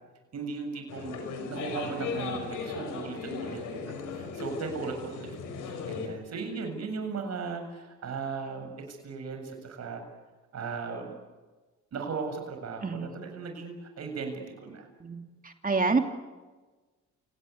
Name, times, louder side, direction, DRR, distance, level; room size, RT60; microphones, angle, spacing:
voice 1, 0.3-1.2 1.5-3.6 4.1-5.3 5.7-10.0 10.5-11.1 11.9-14.9, right 5 dB, 60° right, 5 dB, 7.4 m, -37 dB
sound 1, 0.9-6.1, left 5 dB, 90° left, 5.6 m, -37 dB
voice 2, 12.8-13.2 15.0-16.0, right 4 dB, 30° right, 5 dB, 2.7 m, -28 dB
29.0 x 18.5 x 9.7 m, 1.3 s
cardioid pair, 90°, 30 cm